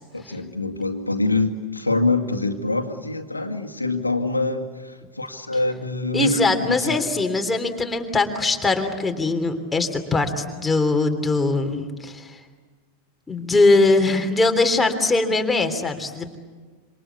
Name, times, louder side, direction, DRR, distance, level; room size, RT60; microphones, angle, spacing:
voice 1, 0.1-7.0, left 2 dB, 85° left, 4 dB, 2.1 m, -25 dB
voice 2, 6.1-12.4 13.3-16.4, left 3 dB, 10° left, 5 dB, 3.3 m, -21 dB
27.0 x 26.5 x 8.3 m, 1.4 s
figure-of-eight pair, 90°, 0 cm